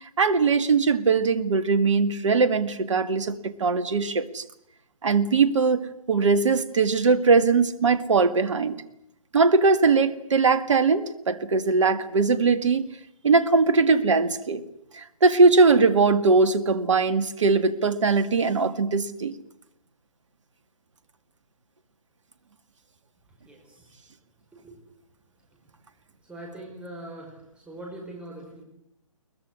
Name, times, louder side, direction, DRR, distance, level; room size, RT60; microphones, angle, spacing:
voice 1, 0.2-4.4 5.0-8.8 9.3-12.9 13.2-14.6 14.9-19.4, right 4 dB, 60° right, 12 dB, 2.0 m, -21 dB
voice 2, 26.3-27.3 27.7-28.6, right 1 dB, 5° right, -1 dB, 5.0 m, -40 dB
22.5 x 20.5 x 9.8 m, 0.78 s
figure-of-eight pair, 140°, 18 cm